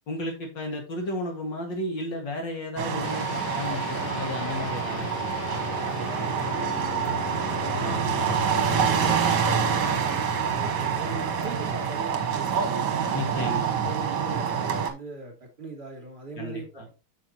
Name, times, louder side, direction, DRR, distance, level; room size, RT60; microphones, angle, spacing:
voice 1, 0.1-5.5 7.8-9.6 13.1-13.8 16.4-16.9, left 1 dB, 60° left, 2 dB, 2.5 m, -34 dB
sound 1, 2.8-14.9, right 7 dB, 60° right, 1.6 m, -27 dB
sound 2, 3.0-12.7, left 11 dB, 75° left, 1.4 m, -38 dB
voice 2, 6.1-8.2 8.8-13.0 13.3-16.9, right 3 dB, 30° right, 0 dB, 2.9 m, -41 dB
8.8 x 6.3 x 2.9 m, 0.29 s
omnidirectional pair, 2.3 m